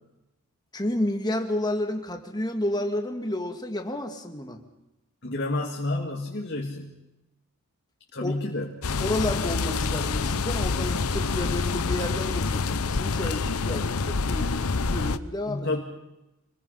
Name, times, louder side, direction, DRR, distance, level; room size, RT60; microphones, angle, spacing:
voice 1, 0.7-4.6 8.2-8.3 9.0-14.6 14.9-15.7, left 1 dB, 20° left, 5 dB, 2.1 m, -30 dB
voice 2, 5.2-7.0 8.1-8.8 15.5-15.8, left 2 dB, 50° left, -1 dB, 2.3 m, -30 dB
sound 1, 8.8-15.2, left 4 dB, 75° left, 0.8 m, -27 dB
26.5 x 21.0 x 5.8 m, 0.96 s
head